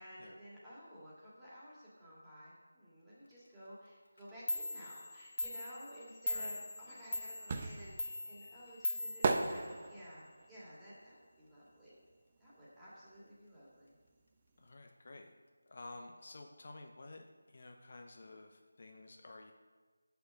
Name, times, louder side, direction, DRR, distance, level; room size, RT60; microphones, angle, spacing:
voice 1, 0.0-12.0 12.4-13.9, equal, 5° right, -10 dB, 2.0 m, -53 dB
Clock, 4.2-4.3 4.5-10.1, left 1 dB, 60° left, 1.3 m, -41 dB
voice 2, 6.3-6.6 14.6-15.3 15.7-19.5, left 2 dB, 45° left, 4 dB, 0.7 m, -52 dB
sound 1, 6.6-12.5 12.7-14.3 14.6-14.7, right 4 dB, 25° right, 0.6 m, -38 dB
6.9 x 6.8 x 6.3 m, 1.4 s
figure-of-eight pair, 170°, 0 cm